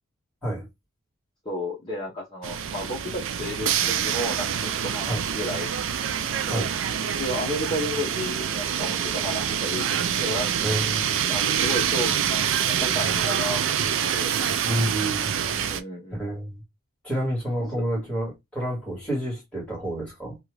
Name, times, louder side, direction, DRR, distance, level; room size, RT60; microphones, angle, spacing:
voice 1, 1.4-5.7 6.5-6.7 7.1-9.9 10.2-10.5 11.1-13.6 14.1-14.3 15.7-16.2, left 1 dB, 25° left, 0.9 m, -32 dB
sound 1, 2.4-15.8, right 8 dB, 55° right, 0.3 m, -26 dB
voice 2, 10.6-11.1 14.6-15.4 16.1-16.6 17.0-20.4, right 1 dB, 5° left, 1.7 m, -29 dB
2.8 x 2.4 x 3.2 m
head